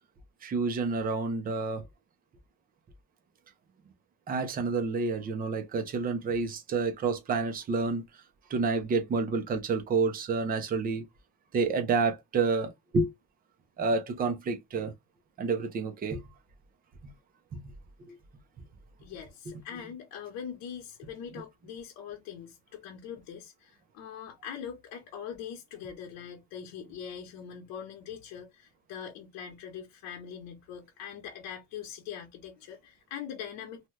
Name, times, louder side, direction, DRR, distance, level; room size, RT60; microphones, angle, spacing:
voice 1, 0.4-1.8 4.3-8.0 8.5-11.0 11.5-13.1 13.8-14.9 15.4-16.2 17.5-17.6 18.1-18.2, right 4 dB, 25° right, 0.6 m, -29 dB
voice 2, 19.0-33.9, left 8 dB, 70° left, 0.9 m, -42 dB
2.7 x 2.2 x 3.2 m
cardioid pair, 150°, 35 cm